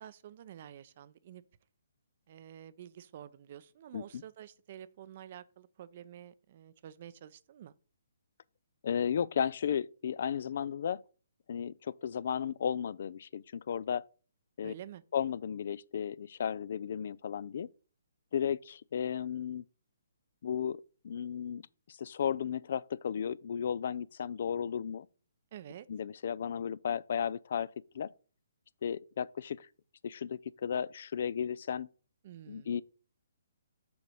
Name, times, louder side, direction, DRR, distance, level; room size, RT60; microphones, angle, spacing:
voice 1, 0.0-1.4 2.3-7.7 14.6-15.0 25.5-25.9 32.2-32.7, right 10 dB, 45° right, 0.5 m, -49 dB
voice 2, 8.8-11.0 11.5-14.0 14.6-14.7 15.1-17.7 18.3-19.6 20.4-21.6 21.9-25.1 25.9-27.7 27.9-28.1 28.8-29.7 30.0-31.9 32.5-32.8, left 8 dB, 55° left, 0.3 m, -34 dB
6.9 x 4.0 x 6.2 m
hypercardioid pair, 145°, 0 cm